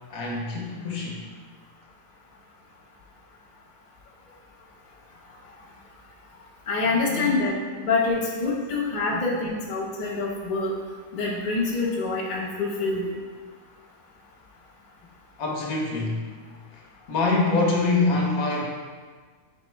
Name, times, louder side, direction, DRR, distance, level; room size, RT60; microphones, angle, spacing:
voice 1, 0.1-1.2 6.8-7.5 9.1-9.3 15.4-16.3 16.7-16.8 17.1-18.7, left 3 dB, 75° left, -1 dB, 1.1 m, -25 dB
voice 2, 6.7-10.7 11.1-13.2, left 3 dB, 35° left, -4 dB, 0.9 m, -26 dB
4.4 x 3.8 x 3.2 m, 1.5 s
omnidirectional pair, 1.5 m